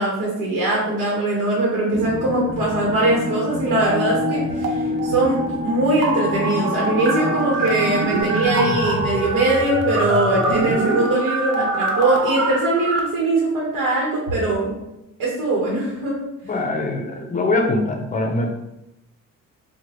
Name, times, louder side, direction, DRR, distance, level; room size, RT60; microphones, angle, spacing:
voice 1, 0.0-14.8 15.2-16.2, right 1 dB, 80° right, -4 dB, 1.1 m, -21 dB
sound 1, 1.9-8.2, left 1 dB, 20° right, 1.1 m, -28 dB
sound 2, 3.8-4.7 5.0-13.0, right 3 dB, 50° right, 0.6 m, -24 dB
voice 2, 16.4-18.5, left 2 dB, 25° left, 2 dB, 0.6 m, -22 dB
4.4 x 2.2 x 3.0 m, 0.89 s
cardioid pair, 125°, 32 cm